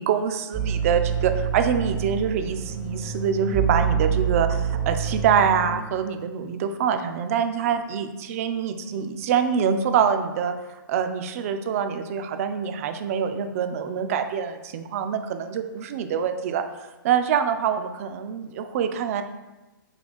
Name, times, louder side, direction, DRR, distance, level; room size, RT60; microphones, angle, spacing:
voice 1, 0.0-10.5 10.9-16.6 17.0-19.2, right 7 dB, 40° right, 8 dB, 0.4 m, -25 dB
sound 1, 0.5-5.8, right 7 dB, 5° left, 0.6 m, -26 dB
3.9 x 2.8 x 3.3 m, 1.1 s
figure-of-eight pair, 125°, 12 cm